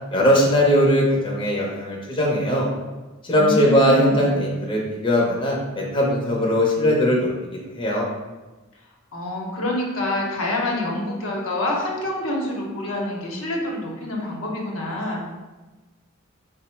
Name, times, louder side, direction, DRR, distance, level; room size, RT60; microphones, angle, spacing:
voice 1, 0.1-2.7 3.2-8.1, equal, 25° left, -4 dB, 0.6 m, -20 dB
voice 2, 3.3-4.4 9.1-15.2, left 1 dB, 75° left, -1 dB, 0.8 m, -26 dB
3.7 x 2.0 x 4.3 m, 1.2 s
head